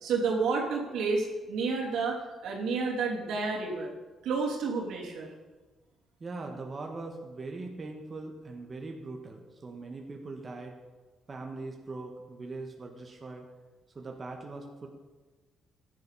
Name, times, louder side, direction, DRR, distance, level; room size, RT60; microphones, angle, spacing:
voice 1, 0.0-3.9 4.2-5.3, right 4 dB, 85° right, -2 dB, 3.1 m, -30 dB
voice 2, 6.2-10.8 11.3-13.5 13.9-14.9, right 3 dB, 35° right, 2 dB, 1.5 m, -41 dB
15.5 x 11.0 x 4.2 m, 1.3 s
cardioid pair, 90°, 0 cm